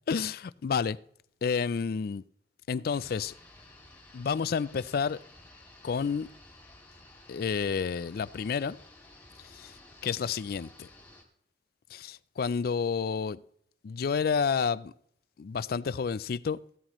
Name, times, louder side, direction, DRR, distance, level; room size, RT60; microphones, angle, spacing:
voice 1, 0.1-1.0 1.4-2.2 2.7-3.3 4.1-5.2 5.8-6.3 7.3-8.8 9.4-9.8 10.0-10.9 11.9-13.4 13.8-14.9 15.4-16.6, left 6 dB, 55° left, 0.4 m, -30 dB
sound 1, 2.9-11.2, left 2 dB, 10° left, 2.1 m, -54 dB
15.0 x 13.0 x 3.1 m
head